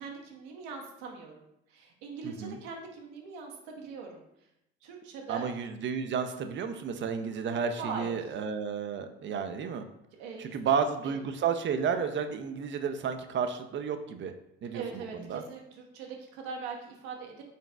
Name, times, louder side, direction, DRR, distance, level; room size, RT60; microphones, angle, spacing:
voice 1, 0.0-4.2 4.8-5.5 7.8-8.3 10.2-11.2 14.7-17.4, right 5 dB, 75° right, 1 dB, 0.9 m, -41 dB
voice 2, 2.2-2.6 5.3-9.9 10.4-14.3 14.6-15.0 15.3-15.4, right 6 dB, 40° right, 8 dB, 0.5 m, -32 dB
4.1 x 3.9 x 2.2 m, 0.82 s
hypercardioid pair, 60°, 29 cm